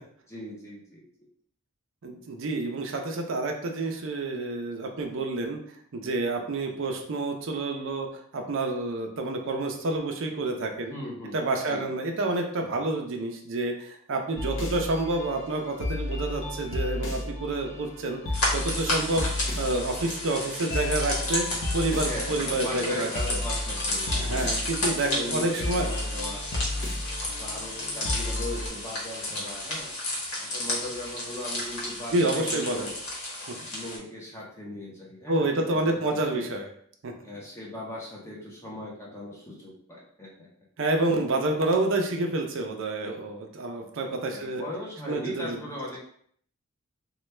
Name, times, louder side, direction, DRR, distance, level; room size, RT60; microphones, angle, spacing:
voice 1, 0.3-1.3 10.9-11.4 11.7-11.9 21.9-24.5 25.1-26.4 27.4-29.9 30.4-32.9 33.7-36.5 37.2-40.5 44.3-46.0, left 1 dB, 10° left, -4 dB, 0.6 m, -38 dB
voice 2, 2.0-5.6 5.9-10.9 11.3-18.2 18.5-19.3 19.6-21.5 21.7-23.4 24.1-25.9 32.1-32.9 33.5-33.6 35.3-36.7 37.0-37.1 40.8-44.6 45.1-45.6, right 2 dB, 60° right, 3 dB, 0.5 m, -28 dB
sound 1, 14.4-28.7, left 2 dB, 55° left, 0.6 m, -33 dB
sound 2, 18.3-34.0, left 1 dB, 80° left, 1.1 m, -32 dB
3.1 x 2.2 x 3.2 m, 0.63 s
head